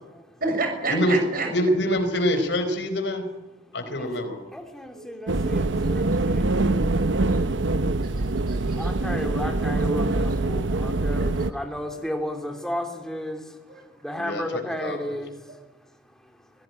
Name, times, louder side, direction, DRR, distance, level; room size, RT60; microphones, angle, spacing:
voice 1, 0.4-1.5 4.9-5.1 5.8-6.2 7.1-7.4 8.0-9.1 9.7-10.4 11.1-11.6 11.9-12.0 13.7-13.8, right 3 dB, 50° right, 4 dB, 7.0 m, -32 dB
voice 2, 1.5-3.2 3.7-4.4 14.2-15.2, equal, 70° left, 8 dB, 4.5 m, -25 dB
voice 3, 4.5-6.9 8.8-13.4 14.0-15.4, equal, 5° left, 4 dB, 3.2 m, -33 dB
sound 1, 5.3-11.5, right 2 dB, 90° right, 0.9 m, -24 dB
25.5 x 17.0 x 9.8 m, 1.2 s
head